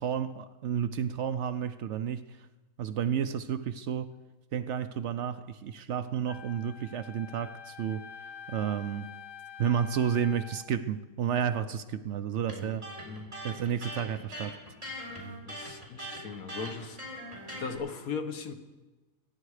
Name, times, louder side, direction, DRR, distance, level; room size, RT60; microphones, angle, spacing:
voice 1, 0.0-2.4 2.8-4.1 4.5-8.0 8.5-9.1 9.6-12.9 13.4-14.5, right 8 dB, 65° right, 0.8 m, -31 dB
Wind instrument woodwind instrument, 6.3-10.7, left 7 dB, 50° left, 0.7 m, -47 dB
Electric guitar, 12.5-17.8, equal, 25° right, 4.1 m, -41 dB
voice 2, 15.4-17.0 17.5-18.5, left 5 dB, 80° left, 1.6 m, -38 dB
24.0 x 9.9 x 4.9 m
omnidirectional pair, 1.5 m